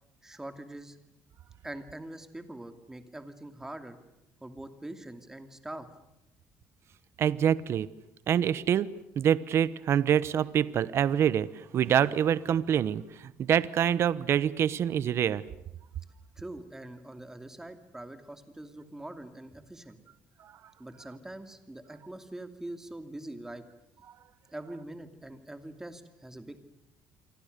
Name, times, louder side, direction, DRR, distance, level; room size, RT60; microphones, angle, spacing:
voice 1, 0.2-1.0 1.6-4.0 4.4-5.9 16.4-20.0 20.8-23.6 24.5-26.6, right 1 dB, 10° right, 8 dB, 2.7 m, -43 dB
voice 2, 7.2-7.9 8.3-8.9 9.2-15.4, right 9 dB, 50° right, 17 dB, 1.1 m, -26 dB
29.0 x 24.5 x 6.8 m, 0.91 s
cardioid pair, 135°, 6 cm